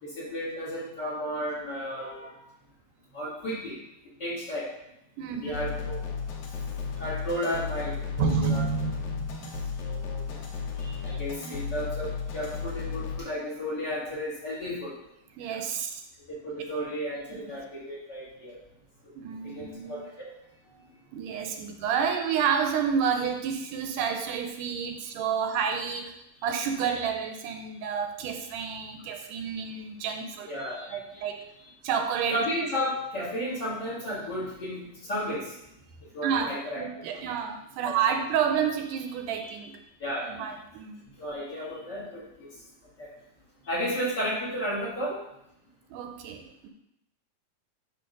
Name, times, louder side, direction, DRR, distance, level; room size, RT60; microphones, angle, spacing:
voice 1, 0.0-2.3 3.1-3.8 4.2-4.7 5.4-6.0 7.0-8.6 9.8-10.4 10.8-14.9 16.3-18.5 19.4-20.3 30.5-30.9 32.3-35.5 36.1-36.8 37.1-37.2 37.9-38.2 39.4-39.5 40.0-40.5 41.2-42.2 43.0-43.1 43.7-45.2, equal, 35° left, -6 dB, 2.2 m, -33 dB
voice 2, 5.2-5.5 8.2-9.6 11.4-11.6 15.4-16.0 17.3-17.4 19.2-20.0 21.1-26.1 26.4-30.5 30.9-31.4 31.8-32.4 36.2-39.8 40.3-41.0 45.9-46.7, right 7 dB, 80° right, 5 dB, 2.2 m, -30 dB
sound 1, 5.5-13.2, left 6 dB, 70° left, 2.2 m, -34 dB
10.0 x 3.6 x 5.2 m, 0.81 s
omnidirectional pair, 3.7 m